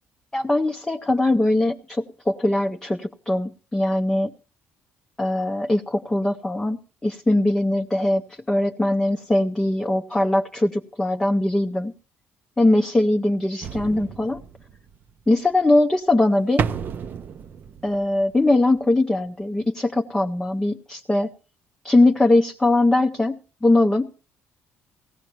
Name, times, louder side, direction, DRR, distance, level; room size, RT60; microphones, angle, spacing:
voice 1, 0.3-4.3 5.2-11.9 12.6-14.4 15.3-16.7 17.8-21.3 21.8-24.1, left 2 dB, 10° left, 3 dB, 0.6 m, -21 dB
sound 1, 13.6-15.1 16.6-18.5 18.8-18.9, right 7 dB, 40° right, 0.6 m, -31 dB
18.0 x 15.5 x 2.9 m, 0.35 s
cardioid pair, 135°, 5 cm